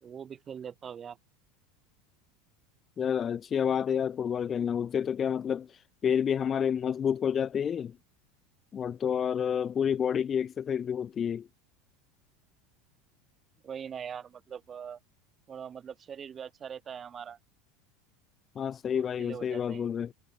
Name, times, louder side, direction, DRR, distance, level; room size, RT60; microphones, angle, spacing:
voice 1, 0.0-1.2 13.6-15.0 15.5-17.4 18.9-19.9, right 7 dB, 30° right, 2.8 m, -42 dB
voice 2, 3.0-8.0 8.7-11.5 18.6-20.1, left 8 dB, 30° left, 0.6 m, -29 dB
supercardioid pair, 120°, 0 cm